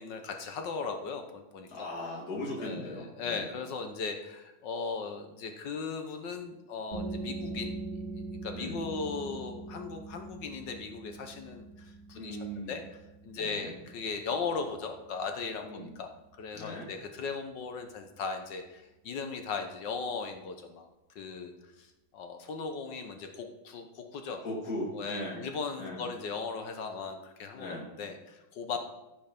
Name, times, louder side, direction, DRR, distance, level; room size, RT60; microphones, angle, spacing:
voice 1, 0.0-1.9 2.6-8.0 8.4-12.4 12.7-16.1 16.4-20.9 21.1-24.4 24.9-28.8, left 5 dB, 65° left, 5 dB, 1.5 m, -38 dB
voice 2, 1.7-3.4 8.5-8.8 12.1-12.7 13.3-13.7 15.6-15.9 16.5-16.9 24.4-25.4 25.8-26.0 27.5-27.9, left 1 dB, 45° left, -3 dB, 2.7 m, -38 dB
sound 1, 6.9-18.3, right 3 dB, 40° right, 1.7 m, -43 dB
15.0 x 5.6 x 5.3 m, 0.97 s
omnidirectional pair, 2.3 m